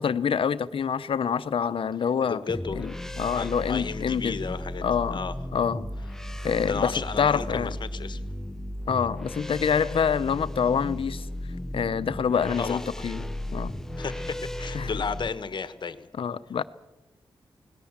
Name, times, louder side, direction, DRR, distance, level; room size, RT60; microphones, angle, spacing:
voice 1, 0.0-2.4 2.7-2.9 3.2-4.4 4.8-5.2 5.5-5.9 6.4-7.7 8.9-11.3 11.7-13.2 13.5-13.7 14.7-15.0 16.2-16.6, left 7 dB, 70° left, 14 dB, 0.9 m, -26 dB
voice 2, 2.0-3.0 3.3-5.3 6.7-8.2 8.9-9.0 12.6-13.0 14.0-16.1, left 5 dB, 55° left, 12 dB, 1.4 m, -33 dB
sound 1, 2.5-15.3, left 1 dB, 5° left, 0.9 m, -35 dB
28.5 x 19.0 x 7.4 m, 1.0 s
wide cardioid pair, 135°, 9 cm